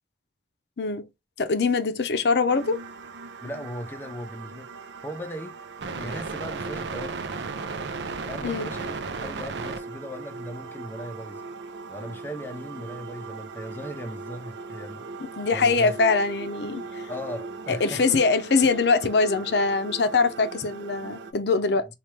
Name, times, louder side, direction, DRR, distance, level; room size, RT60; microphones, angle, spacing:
voice 1, 0.8-1.1 1.4-2.8 8.4-8.7 15.2-16.8 17.7-21.9, left 4 dB, 75° left, 0.6 m, -23 dB
sound 1, 2.5-21.3, right 4 dB, 85° right, 0.5 m, -37 dB
voice 2, 3.4-4.7 5.0-5.6 6.0-7.2 8.3-11.4 11.9-15.1 15.5-16.0 17.1-18.0, equal, 10° left, 0.5 m, -37 dB
4.3 x 2.4 x 3.2 m
head